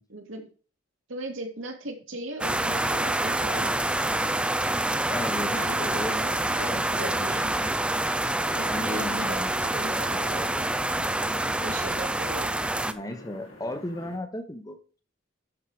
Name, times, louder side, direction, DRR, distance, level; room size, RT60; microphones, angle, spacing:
voice 1, 0.1-0.5 1.1-3.8 5.5-7.6 8.5-10.5 11.4-12.5, right 1 dB, 75° right, 3 dB, 2.3 m, -38 dB
sound 1, 2.4-12.9, right 1 dB, 5° right, 0.4 m, -27 dB
voice 2, 5.1-6.1 6.5-7.1 8.7-10.8 12.8-14.8, left 1 dB, 15° left, 7 dB, 1.0 m, -36 dB
sound 2, 8.4-14.2, left 2 dB, 90° left, 2.8 m, -47 dB
12.0 x 4.9 x 4.8 m, 0.37 s
head